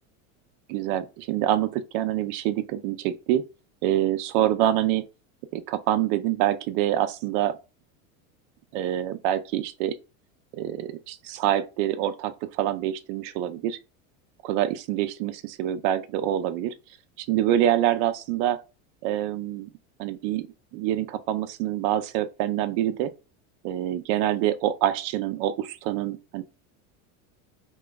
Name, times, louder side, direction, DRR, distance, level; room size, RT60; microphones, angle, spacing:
voice 1, 0.7-3.4 3.8-5.0 5.5-7.6 8.7-10.0 10.5-13.8 14.4-16.7 17.2-18.6 19.0-19.7 20.0-20.5 20.7-23.1 23.6-26.4, right 12 dB, 60° right, 0.5 m, -26 dB
3.4 x 3.0 x 2.2 m
supercardioid pair, 105°, 41 cm